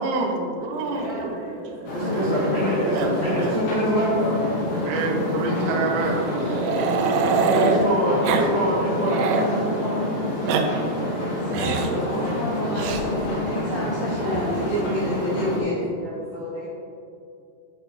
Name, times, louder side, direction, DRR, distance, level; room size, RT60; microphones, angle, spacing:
voice 1, 0.0-1.9 4.8-6.6 13.9-14.2, right 3 dB, 75° right, -1 dB, 2.8 m, -28 dB
Growling, 0.8-2.7 2.9-3.1 3.4-3.5 3.9-4.0 5.0-7.8 8.2-8.5 8.8-9.5 10.2-10.6 11.5-12.0 12.7-13.0 14.2-14.8, right 5 dB, 90° right, 3.4 m, -26 dB
voice 2, 0.9-4.9 5.4-5.8 7.2-10.6 14.1-14.9 15.2-15.4 15.7-16.7, equal, 85° left, -11 dB, 1.0 m, -27 dB
sound 1, 1.8-15.6, left 1 dB, 60° left, 3.6 m, -27 dB
voice 3, 11.0-15.9, equal, 50° right, -12 dB, 1.8 m, -29 dB
11.0 x 6.1 x 3.2 m, 2.5 s
omnidirectional pair, 5.8 m